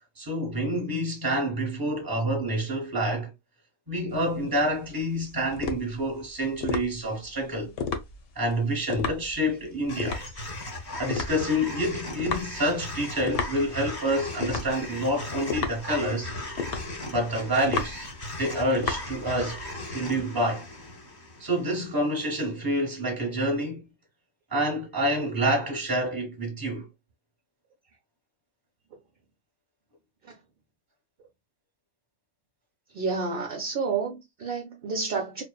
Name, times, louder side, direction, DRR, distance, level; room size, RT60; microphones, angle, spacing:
voice 1, 0.2-3.3 3.9-7.7 8.3-10.2 10.9-16.3 17.1-18.1 18.4-19.7 19.9-20.6 21.4-23.9 24.5-26.8, equal, 20° right, 0.8 m, -28 dB
sound 1, 4.1-19.7, left 5 dB, 70° left, 0.9 m, -34 dB
sound 2, 9.9-22.2, left 1 dB, 25° left, 0.5 m, -38 dB
voice 2, 32.9-35.4, right 4 dB, 60° right, 0.6 m, -30 dB
2.9 x 2.0 x 2.2 m
omnidirectional pair, 1.5 m